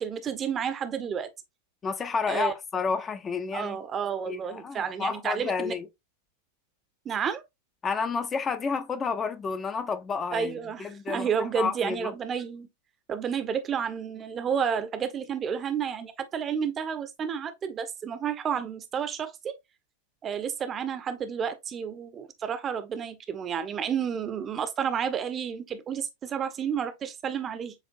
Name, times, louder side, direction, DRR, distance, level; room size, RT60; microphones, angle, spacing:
voice 1, 0.0-1.3 2.3-2.5 3.5-5.7 7.0-7.4 10.3-12.7 13.1-19.5 20.2-27.7, right 7 dB, 25° right, 0.7 m, -31 dB
voice 2, 1.8-3.8 4.3-5.9 7.8-12.1, left 5 dB, 20° left, 0.6 m, -30 dB
7.3 x 2.5 x 2.5 m
figure-of-eight pair, 90°, 0 cm